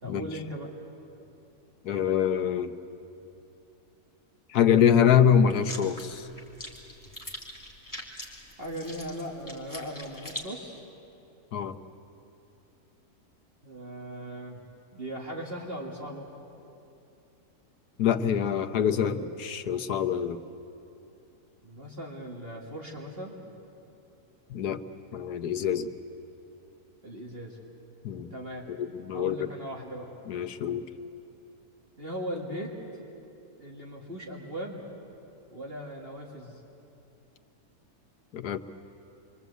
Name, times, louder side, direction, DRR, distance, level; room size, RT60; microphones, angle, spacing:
voice 1, 0.0-0.7 8.6-10.8 13.6-14.6 14.9-16.2 21.6-23.4 27.0-27.6 28.3-28.7 29.1-30.1 32.0-32.7 33.6-34.8 35.5-36.6, equal, 40° right, -2 dB, 2.3 m, -38 dB
voice 2, 1.8-2.7 4.5-6.3 11.5-11.8 18.0-20.4 24.5-24.8 25.1-25.9 28.0-28.3 28.7-29.5 30.3-30.9 38.3-38.6, left 8 dB, 80° left, 7 dB, 1.5 m, -25 dB
sound 1, 5.5-10.4, left 1 dB, 10° left, 2.9 m, -43 dB
27.0 x 23.5 x 8.2 m, 2.8 s
omnidirectional pair, 1.6 m